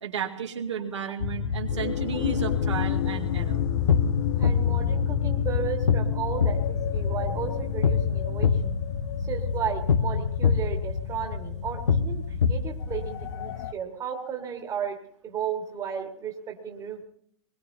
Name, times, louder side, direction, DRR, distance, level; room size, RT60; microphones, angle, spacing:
voice 1, 0.0-3.6, right 6 dB, 85° right, 1 dB, 2.2 m, -33 dB
sound 1, 1.2-13.7, left 8 dB, 55° left, 0.8 m, -29 dB
sound 2, 3.4-13.3, left 5 dB, 80° left, 1.0 m, -27 dB
voice 2, 4.4-8.7 9.3-15.0 15.2-17.0, right 7 dB, 25° right, 3 dB, 1.9 m, -34 dB
22.5 x 21.0 x 2.8 m, 0.67 s
hypercardioid pair, 120°, 15 cm